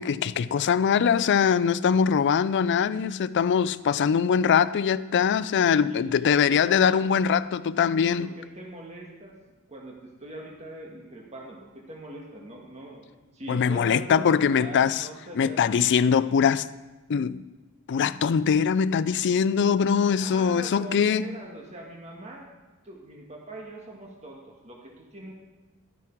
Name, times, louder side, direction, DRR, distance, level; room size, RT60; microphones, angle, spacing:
voice 1, 0.0-8.3 13.5-15.1 15.4-16.7 17.1-17.4 17.9-21.3, left 7 dB, 55° left, 0.4 m, -22 dB
voice 2, 5.9-7.4 8.2-9.4 9.7-13.1 13.3-16.0 20.2-22.5 22.8-25.3, right 1 dB, 30° right, 1.5 m, -42 dB
12.5 x 9.3 x 4.5 m
head